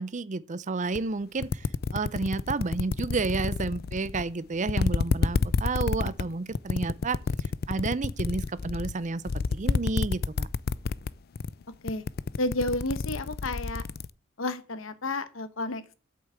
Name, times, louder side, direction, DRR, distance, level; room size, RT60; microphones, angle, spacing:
voice 1, 0.0-9.2 9.5-10.5, right 3 dB, 40° right, 0.6 m, -31 dB
sound 1, 1.0-1.1 1.4-4.3 4.7-11.1 11.4-11.6 11.9-14.1, left 4 dB, 50° left, 0.4 m, -28 dB
voice 2, 12.4-13.8 14.4-15.9, left 2 dB, 75° left, 1.1 m, -31 dB
8.4 x 6.5 x 7.9 m
head